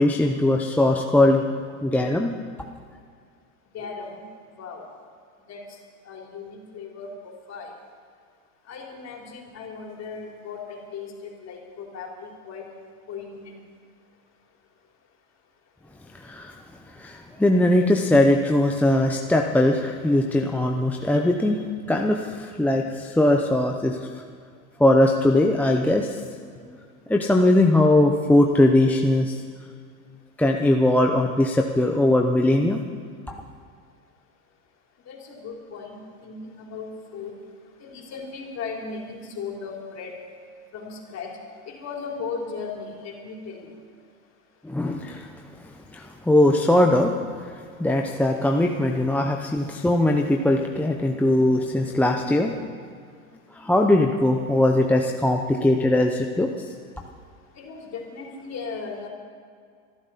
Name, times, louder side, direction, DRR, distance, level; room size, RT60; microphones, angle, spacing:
voice 1, 0.0-1.4 1.8-2.3 16.2-16.6 17.0-21.6 21.9-24.1 24.8-26.1 27.1-29.4 30.4-32.8 33.3-33.4 44.6-45.3 45.9-47.1 47.8-52.7 53.5-56.5, left 1 dB, 5° left, 2 dB, 0.8 m, -20 dB
voice 2, 3.7-4.2 4.6-4.8 5.5-5.6 6.1-7.7 8.7-11.1 11.4-12.7 13.1-13.5 25.8-25.9 35.1-37.3 37.8-40.1 40.7-41.3 41.7-43.6 57.6-59.1, left 5 dB, 35° left, 0 dB, 3.9 m, -37 dB
25.5 x 12.0 x 4.2 m, 2.1 s
hypercardioid pair, 110°, 43 cm